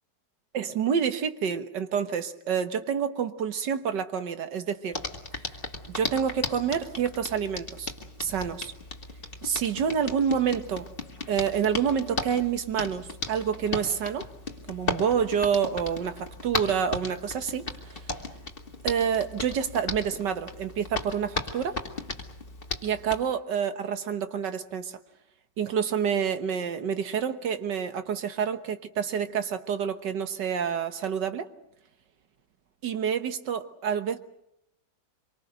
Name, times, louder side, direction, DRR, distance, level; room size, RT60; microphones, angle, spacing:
voice 1, 0.5-5.0 5.9-7.9 8.2-8.7 9.4-10.9 11.3-14.3 14.7-18.0 18.8-21.8 22.8-25.0 25.6-31.5 32.8-34.2, right 7 dB, 70° right, 9 dB, 1.9 m, -28 dB
Hands, 4.9-23.2, left 3 dB, 30° left, 2.2 m, -36 dB
26.0 x 24.0 x 6.6 m, 0.79 s
omnidirectional pair, 1.9 m